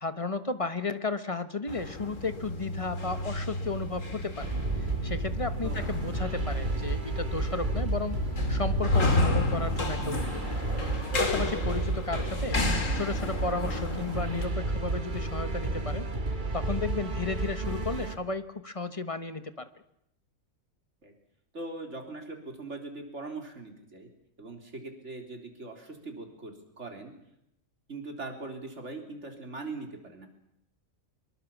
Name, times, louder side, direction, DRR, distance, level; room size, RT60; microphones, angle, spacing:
voice 1, 0.0-10.4 11.2-12.6 12.9-16.0 16.5-19.7, left 3 dB, 25° left, 10 dB, 1.2 m, -34 dB
sound 1, 1.7-14.4, left 2 dB, 70° left, 3.0 m, -32 dB
sound 2, 4.4-18.2, right 2 dB, 40° right, 1.8 m, -32 dB
voice 2, 5.6-6.2 21.0-21.1 21.5-24.1 24.4-27.1 27.9-30.3, right 3 dB, 60° right, 3 dB, 4.1 m, -41 dB
24.0 x 22.5 x 7.3 m, 0.78 s
omnidirectional pair, 1.4 m